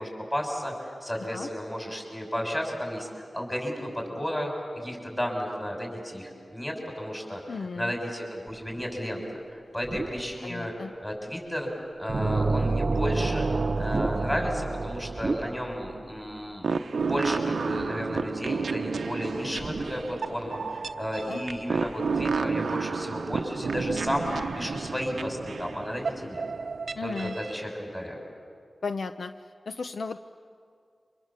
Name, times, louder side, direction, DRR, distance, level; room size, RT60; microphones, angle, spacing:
voice 1, 0.0-13.5 13.8-16.7 17.0-24.3 24.5-26.4 27.0-28.2, equal, 15° left, 1 dB, 6.5 m, -33 dB
voice 2, 7.5-7.9 10.4-10.9 21.3-21.4 27.0-27.4 28.8-29.3 29.7-30.2, left 4 dB, 70° left, 9 dB, 0.7 m, -34 dB
sound 1, 8.5-9.1 9.7-10.5 11.1-11.2 12.2-13.4 13.7-16.0 16.3-16.5 17.7-18.5 19.5-20.5 21.5-22.9 23.4-25.1 25.4-25.6, right 2 dB, 40° right, 1.0 m, -38 dB
sound 2, 12.1-15.9, right 3 dB, 55° right, 0.6 m, -28 dB
sound 3, 16.6-27.5, right 5 dB, 80° right, 0.8 m, -31 dB
29.5 x 25.5 x 7.6 m, 2.3 s
wide cardioid pair, 100°, 0 cm